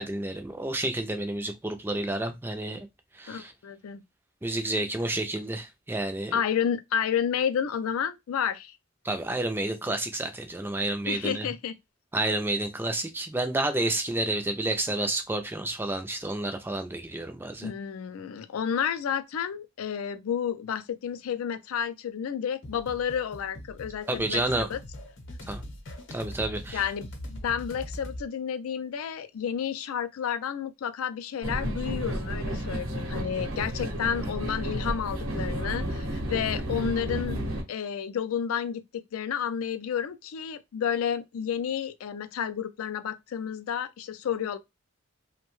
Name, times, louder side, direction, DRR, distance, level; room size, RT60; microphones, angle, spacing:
voice 1, 0.0-2.9 3.2-3.5 4.4-6.4 9.0-11.5 12.1-17.7 24.1-24.7 25.5-25.6 26.1-26.8, right 2 dB, 10° right, 0.3 m, -30 dB
voice 2, 3.3-4.0 6.3-8.8 11.1-11.8 17.6-24.8 26.7-37.4 37.7-44.6, left 8 dB, 90° left, 0.4 m, -31 dB
sound 1, 22.6-28.2, left 1 dB, 60° left, 0.8 m, -41 dB
sound 2, 31.4-37.6, equal, 80° right, 0.8 m, -32 dB
2.6 x 2.1 x 3.0 m
head